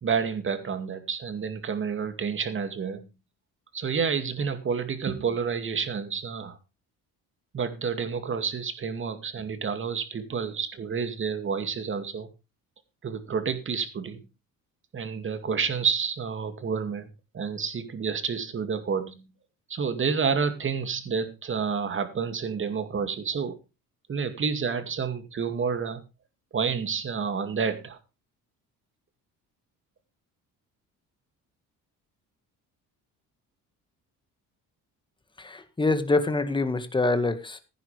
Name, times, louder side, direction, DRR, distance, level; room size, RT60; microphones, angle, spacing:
voice 1, 0.0-3.1 3.7-6.6 7.5-12.3 13.0-14.2 14.9-19.3 19.7-23.6 24.1-26.0 26.5-28.0, right 6 dB, 35° right, 2.3 m, -29 dB
voice 2, 35.4-37.6, left 3 dB, 15° left, 1.7 m, -25 dB
16.0 x 10.5 x 3.3 m
cardioid pair, 115°, 33 cm